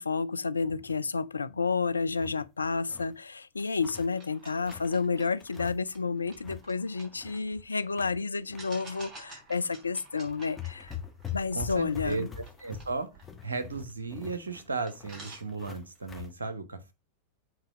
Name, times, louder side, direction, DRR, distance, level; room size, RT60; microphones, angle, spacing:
voice 1, 0.0-11.0 11.3-12.3, left 4 dB, 75° left, 0.4 m, -30 dB
sound 1, 0.6-1.1 1.5-1.6 1.9-3.2 3.6-5.0 5.4-6.0 6.2-6.7 7.0-8.6 9.0-9.2 9.9-10.0 10.2-16.3, left 9 dB, 15° left, 1.4 m, -44 dB
sound 2, 3.9-7.9 8.6-14.2 14.6-14.7 14.9-16.0, right 2 dB, 25° right, 3.3 m, -52 dB
voice 2, 11.5-13.1 13.4-16.9, right 3 dB, 75° right, 1.0 m, -35 dB
7.9 x 3.9 x 4.8 m
figure-of-eight pair, 90°, 0 cm